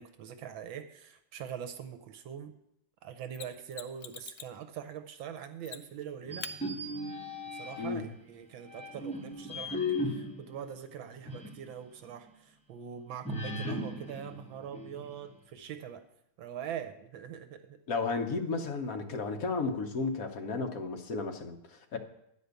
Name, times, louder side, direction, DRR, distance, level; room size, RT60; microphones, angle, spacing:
voice 1, 0.0-2.5 3.0-6.5 7.5-16.0 16.4-17.8, right 8 dB, 75° right, 9 dB, 1.4 m, -43 dB
Mechanisms, 3.3-4.6 5.6-6.1 6.4-6.6 9.3-9.4, left 9 dB, 70° left, 1.1 m, -44 dB
sound 1, 6.2-8.1 8.7-11.7 12.0-12.1 13.2-15.3, left 1 dB, 10° left, 0.4 m, -37 dB
voice 2, 17.9-22.0, left 4 dB, 50° left, 5 dB, 1.2 m, -33 dB
10.0 x 5.2 x 8.1 m, 0.79 s
omnidirectional pair, 2.3 m